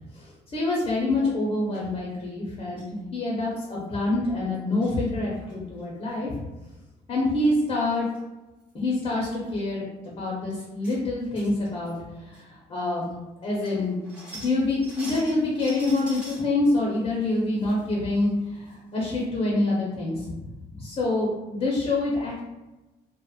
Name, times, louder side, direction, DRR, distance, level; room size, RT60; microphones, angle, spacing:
voice 1, 0.1-2.8 3.1-6.4 7.1-8.0 8.7-13.1 13.4-14.0 14.3-22.4, left 2 dB, 35° left, -4 dB, 0.7 m, -26 dB
sound 1, 0.7-1.1 1.7-1.9 2.8-3.0 3.3-3.4 3.6-3.8 4.5-5.0 5.4-5.8 7.6-7.7 7.9-8.2 8.6-8.7 9.4-9.6 10.0-10.1 10.5-11.0 11.3-12.0 12.3-12.4 13.0-13.1 13.4-16.5 16.9-17.8 18.1-18.2 18.7-18.8 19.1-19.2, right 1 dB, 5° right, 0.9 m, -45 dB
2.9 x 2.0 x 2.2 m, 1.1 s
cardioid pair, 110°, 17 cm